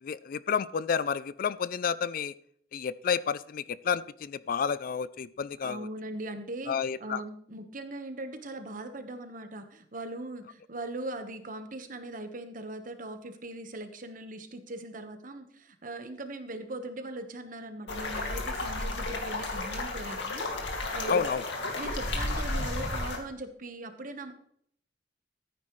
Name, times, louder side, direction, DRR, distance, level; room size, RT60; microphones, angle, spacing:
voice 1, 0.0-2.3 2.7-5.9 6.7-7.2 21.1-21.4, left 6 dB, 50° left, 18 dB, 0.4 m, -30 dB
voice 2, 5.6-21.2 21.8-24.3, right 2 dB, 50° right, 7 dB, 1.2 m, -40 dB
sound 1, 17.9-23.2, left 2 dB, 85° left, 2.2 m, -32 dB
14.0 x 9.4 x 3.2 m, 0.66 s
head